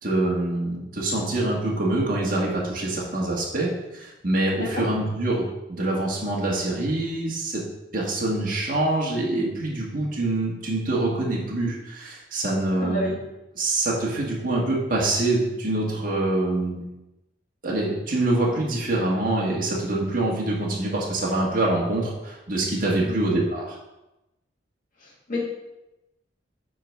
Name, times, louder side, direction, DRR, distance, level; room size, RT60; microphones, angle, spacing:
voice 1, 0.0-7.7 7.9-13.1 13.5-16.9 17.6-23.8, right 2 dB, 50° right, -4 dB, 1.6 m, -25 dB
voice 2, 12.8-13.2 23.0-23.4 25.0-25.4, left 1 dB, 45° left, -3 dB, 2.1 m, -30 dB
8.9 x 3.9 x 4.7 m, 0.95 s
head